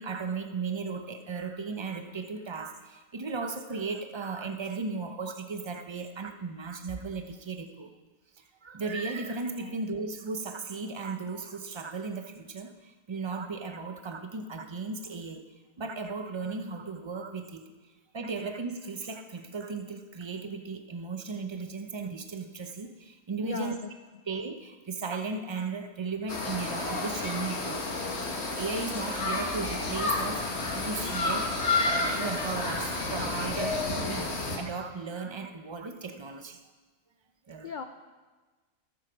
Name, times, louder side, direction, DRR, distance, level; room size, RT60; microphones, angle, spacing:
voice 1, 0.0-7.9 8.4-15.4 15.8-17.7 18.1-23.8 24.3-27.9 28.2-30.4 30.7-34.3 34.6-36.6 37.5-37.7, right 4 dB, 40° right, 7 dB, 0.4 m, -36 dB
voice 2, 23.4-23.9 37.6-37.9, left 5 dB, 85° left, 7 dB, 0.4 m, -37 dB
sound 1, 26.3-34.6, left 3 dB, 50° left, 1.6 m, -30 dB
13.0 x 7.7 x 5.1 m, 1.3 s
omnidirectional pair, 1.5 m